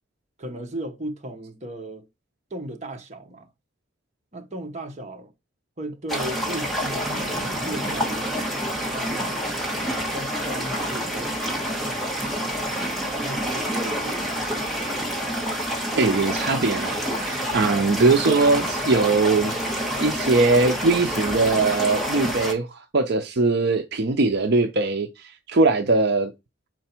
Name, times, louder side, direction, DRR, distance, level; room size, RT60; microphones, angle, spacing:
voice 1, 0.4-2.1 2.5-3.5 4.3-5.3 5.8-8.6 8.8-9.4 9.9-11.8 13.1-14.5, right 1 dB, 35° right, 1.0 m, -36 dB
sound 1, 6.1-22.5, equal, ahead, 1.6 m, -28 dB
voice 2, 15.9-19.5 20.0-26.3, right 3 dB, 55° right, 0.6 m, -21 dB
6.7 x 4.5 x 4.4 m
head